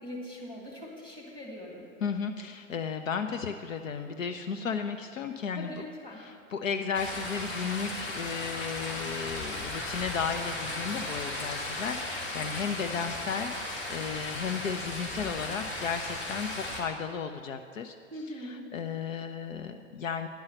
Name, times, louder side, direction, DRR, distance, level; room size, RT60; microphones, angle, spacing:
voice 1, 0.0-1.8 5.6-6.2 18.1-18.7, left 1 dB, 10° left, -3 dB, 2.2 m, -41 dB
voice 2, 2.0-5.8 6.1-20.3, left 6 dB, 70° left, 7 dB, 0.7 m, -34 dB
sound 1, 6.9-16.8, left 2 dB, 50° left, 2.2 m, -36 dB
10.5 x 5.5 x 7.7 m, 2.1 s
figure-of-eight pair, 105°, 41 cm